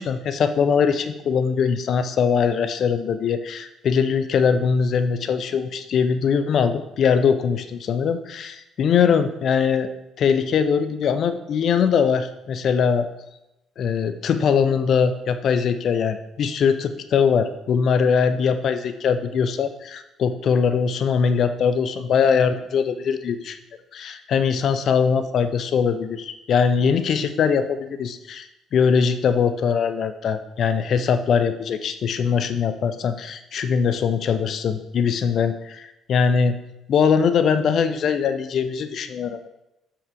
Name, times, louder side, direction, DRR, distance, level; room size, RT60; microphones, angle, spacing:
voice 1, 0.0-9.9 10.2-13.1 13.8-23.6 23.9-28.5 28.7-36.6 36.9-39.5, left 6 dB, 55° left, 10 dB, 0.6 m, -21 dB
7.3 x 5.8 x 4.8 m, 0.90 s
hypercardioid pair, 50°, 0 cm